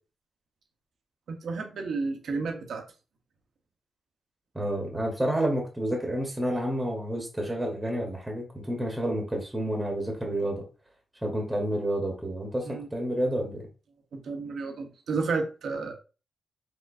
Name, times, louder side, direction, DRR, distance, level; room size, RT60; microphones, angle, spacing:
voice 1, 1.3-2.8 12.6-12.9 14.1-15.9, right 4 dB, 75° right, 5 dB, 0.8 m, -31 dB
voice 2, 4.5-10.6 11.2-13.6, right 1 dB, 10° right, 0 dB, 1.1 m, -29 dB
4.3 x 3.7 x 2.6 m, 0.33 s
wide cardioid pair, 115°, 0 cm